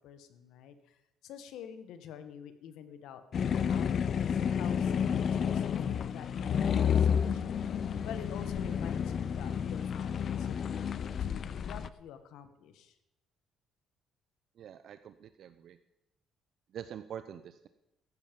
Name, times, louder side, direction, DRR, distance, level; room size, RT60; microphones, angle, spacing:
voice 1, 0.0-7.6 8.0-13.0, left 8 dB, 80° left, 10 dB, 1.3 m, -48 dB
sound 1, 3.3-11.9, left 7 dB, 40° left, 0.5 m, -30 dB
voice 2, 14.6-15.8 16.7-17.7, right 9 dB, 50° right, 11 dB, 0.5 m, -45 dB
14.5 x 11.0 x 5.2 m, 0.88 s
cardioid pair, 150°, 0 cm